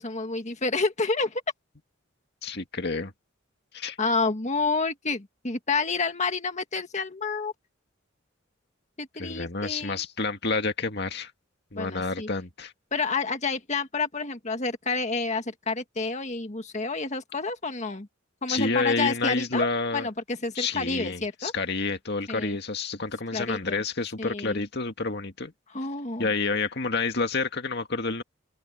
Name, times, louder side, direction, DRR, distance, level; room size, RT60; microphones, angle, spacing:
voice 1, 0.0-1.4 4.0-7.5 9.0-10.0 11.7-12.3 12.9-18.1 18.4-19.7 19.9-21.5 22.3-22.6 23.3-23.8 24.2-24.6 25.7-26.3, left 4 dB, 35° left, 1.7 m, -29 dB
voice 2, 2.4-3.1 3.7-4.0 9.2-11.3 11.7-12.7 18.5-20.1 20.6-25.5 26.2-28.2, left 3 dB, 55° left, 2.1 m, -29 dB
head